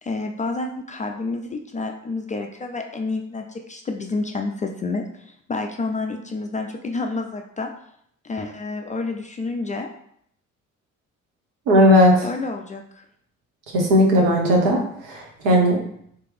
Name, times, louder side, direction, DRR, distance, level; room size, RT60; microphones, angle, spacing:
voice 1, 0.0-7.7 8.2-9.9 12.2-12.8, left 3 dB, 20° left, 3 dB, 0.3 m, -29 dB
voice 2, 11.7-12.3 13.7-15.8, equal, 70° right, 0 dB, 1.0 m, -17 dB
3.4 x 3.0 x 3.3 m, 0.68 s
figure-of-eight pair, 40°, 39 cm